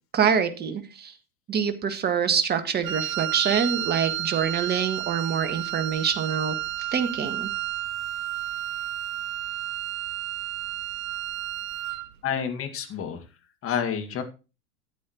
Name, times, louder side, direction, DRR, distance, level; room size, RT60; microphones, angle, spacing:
voice 1, 0.1-1.1 1.5-6.5 6.9-7.5, right 7 dB, 20° right, 8 dB, 1.6 m, -25 dB
Wind instrument woodwind instrument, 2.8-12.1, right 12 dB, 65° right, 1.4 m, -31 dB
voice 2, 12.2-13.2 13.6-14.2, left 7 dB, 30° left, 7 dB, 2.1 m, -29 dB
13.0 x 8.7 x 3.0 m, 0.30 s
hypercardioid pair, 105°, 45 cm